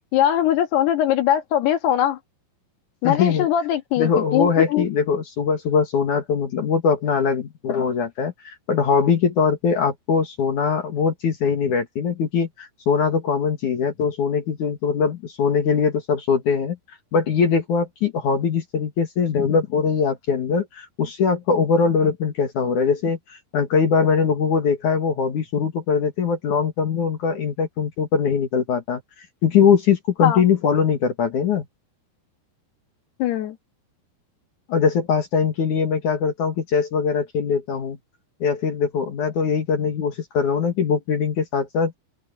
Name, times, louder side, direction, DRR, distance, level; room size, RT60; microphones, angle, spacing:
voice 1, 0.1-2.2 3.0-4.9 30.2-30.4 33.2-33.6, left 11 dB, 70° left, 3.7 m, -21 dB
voice 2, 3.0-3.5 4.0-16.8 17.1-29.0 29.4-31.6 34.7-38.0 38.4-41.9, left 6 dB, 55° left, 2.9 m, -21 dB
open air
omnidirectional pair, 4.9 m